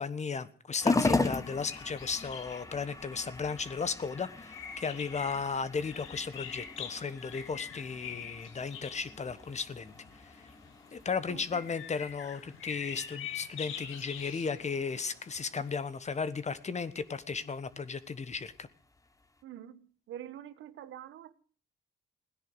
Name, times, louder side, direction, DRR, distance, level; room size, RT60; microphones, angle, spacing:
voice 1, 0.0-9.9 10.9-18.7, left 5 dB, 35° left, 14 dB, 1.4 m, -35 dB
sound 1, 0.8-19.4, left 3 dB, 15° left, 1.3 m, -39 dB
sound 2, 1.4-15.7, left 9 dB, 85° left, 1.8 m, -46 dB
voice 2, 11.3-11.6 19.4-21.3, right 11 dB, 80° right, 14 dB, 1.3 m, -46 dB
17.0 x 10.5 x 7.9 m, 0.43 s
cardioid pair, 90°, 20 cm